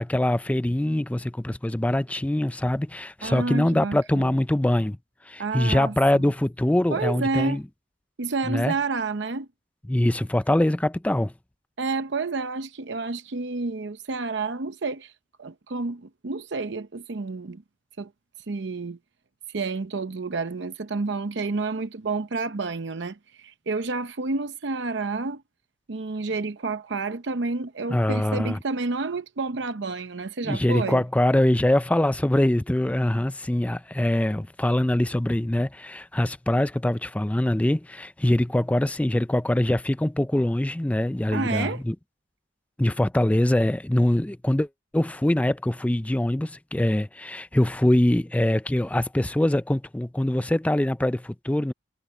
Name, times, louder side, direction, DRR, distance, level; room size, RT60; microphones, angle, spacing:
voice 1, 0.0-5.0 5.3-7.6 8.5-8.7 9.9-11.3 27.9-28.6 30.4-41.9 42.8-44.7 44.9-51.7, left 1 dB, 10° left, 0.4 m, -23 dB
voice 2, 3.2-4.4 5.4-6.3 6.9-7.6 8.2-9.5 11.8-15.1 15.4-17.6 18.0-18.1 18.5-19.0 19.5-25.4 25.9-31.0 41.3-41.8, right 3 dB, 70° right, 0.7 m, -30 dB
head